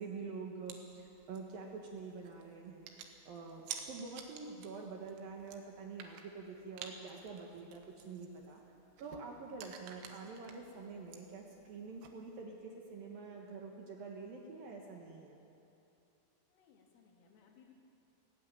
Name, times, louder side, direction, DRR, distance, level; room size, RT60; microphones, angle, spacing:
voice 1, 0.0-8.6 9.0-15.4, right 4 dB, 65° right, 0 dB, 2.5 m, -47 dB
sound 1, 0.7-12.5, right 7 dB, 85° right, 4.1 m, -53 dB
voice 2, 16.5-17.7, left 7 dB, 80° left, 0 dB, 5.0 m, -64 dB
17.5 x 17.0 x 9.0 m, 2.7 s
omnidirectional pair, 5.7 m